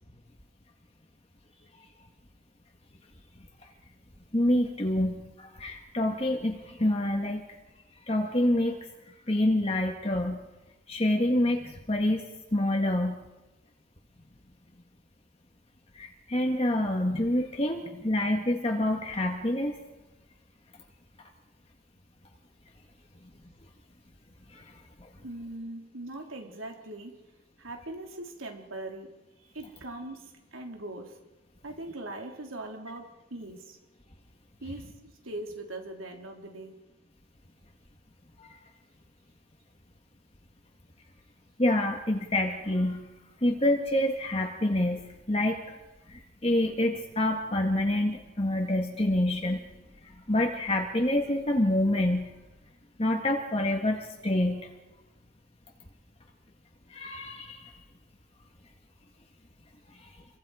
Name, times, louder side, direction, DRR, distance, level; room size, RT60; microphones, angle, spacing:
voice 1, 4.3-7.4 8.1-8.8 9.3-10.4 10.9-12.2 12.5-13.1 15.9-19.8 24.5-24.7 38.4-38.5 41.6-43.0 43.4-45.0 45.3-45.6 46.1-49.6 50.3-52.3 53.0-54.7 56.9-57.7 59.9-60.1, left 1 dB, 30° left, 2 dB, 1.7 m, -27 dB
voice 2, 25.2-27.2 27.6-31.2 31.6-33.8 34.6-34.9 35.2-36.7, right 2 dB, 85° right, 2 dB, 3.6 m, -41 dB
28.5 x 23.5 x 5.0 m, 1.1 s
head